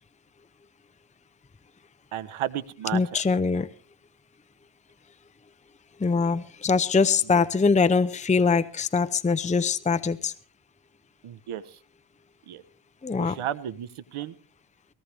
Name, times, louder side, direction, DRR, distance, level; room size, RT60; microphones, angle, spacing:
voice 1, 2.1-3.2 7.3-7.4 11.2-11.8 12.5-12.6 13.2-14.3, right 11 dB, 85° right, 15 dB, 1.3 m, -33 dB
voice 2, 2.9-3.7 6.0-10.3 13.0-13.4, left 4 dB, 15° left, 13 dB, 0.7 m, -23 dB
19.0 x 18.0 x 3.5 m, 0.40 s
cardioid pair, 80°, 48 cm